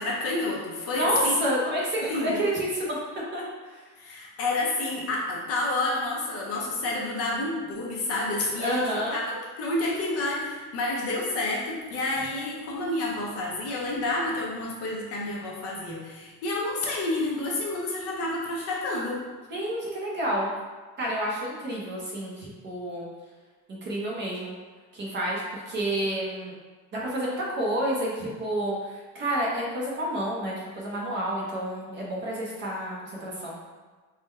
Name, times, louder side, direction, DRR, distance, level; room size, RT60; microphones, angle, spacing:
voice 1, 0.0-1.3 2.0-2.3 4.0-8.8 9.1-19.2, left 2 dB, 40° left, -3 dB, 0.6 m, -29 dB
voice 2, 0.9-3.0 3.3-3.8 8.6-9.2 19.5-20.5 21.0-23.1 23.7-24.5 24.9-26.5 26.9-33.6, right 1 dB, 30° right, -5 dB, 0.6 m, -29 dB
3.7 x 2.1 x 4.1 m, 1.3 s
cardioid pair, 175°, 39 cm